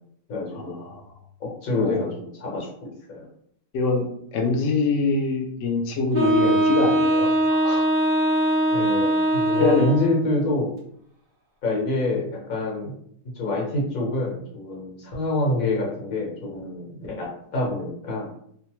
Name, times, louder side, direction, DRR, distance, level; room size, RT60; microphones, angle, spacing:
voice 1, 0.3-0.8 1.4-3.3 8.7-10.7 11.6-12.9 13.3-18.3, left 2 dB, 60° left, -3 dB, 1.3 m, -27 dB
voice 2, 3.7-7.9 9.6-9.9, left 4 dB, 80° left, 1 dB, 0.6 m, -24 dB
Wind instrument woodwind instrument, 6.1-10.2, right 1 dB, 45° right, 0.6 m, -21 dB
3.1 x 2.1 x 2.9 m, 0.69 s
omnidirectional pair, 1.8 m